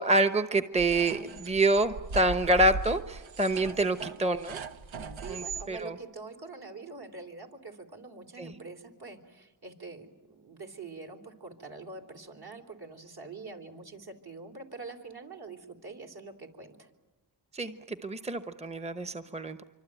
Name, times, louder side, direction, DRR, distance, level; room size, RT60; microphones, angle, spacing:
voice 1, 0.0-4.6 5.3-5.9 8.4-8.5 17.5-19.6, right 2 dB, 15° right, 10 dB, 1.0 m, -27 dB
sound 1, 0.8-5.7, right 3 dB, 85° right, 1.2 m, -39 dB
voice 2, 5.2-16.9, right 4 dB, 55° right, 4 dB, 3.9 m, -45 dB
26.0 x 25.0 x 9.1 m, 1.1 s
cardioid pair, 70°, 45 cm